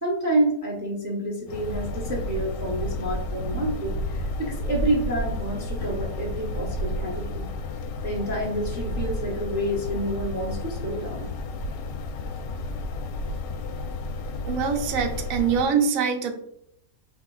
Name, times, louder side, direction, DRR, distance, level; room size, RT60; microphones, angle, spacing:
voice 1, 0.0-7.5 8.0-11.3, right 1 dB, 15° right, -3 dB, 0.7 m, -28 dB
sound 1, 1.5-15.7, left 7 dB, 85° left, 1.2 m, -35 dB
sound 2, 1.7-15.4, right 1 dB, 80° right, 1.3 m, -34 dB
voice 2, 14.5-16.3, right 6 dB, 60° right, 3 dB, 1.0 m, -24 dB
5.9 x 2.9 x 2.4 m, 0.73 s
omnidirectional pair, 1.8 m